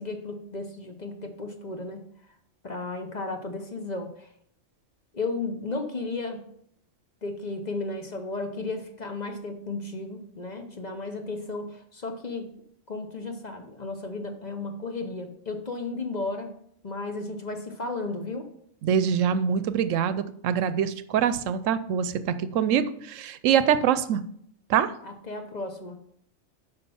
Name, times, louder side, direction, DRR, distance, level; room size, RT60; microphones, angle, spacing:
voice 1, 0.0-2.0 2.6-4.3 5.1-6.4 7.2-12.5 12.9-16.5 16.8-18.5 25.0-26.0, left 3 dB, 40° left, 5 dB, 0.9 m, -34 dB
voice 2, 18.8-24.2 24.7-24.9, right 8 dB, 80° right, 13 dB, 0.9 m, -24 dB
8.6 x 5.4 x 5.5 m, 0.69 s
omnidirectional pair, 1.3 m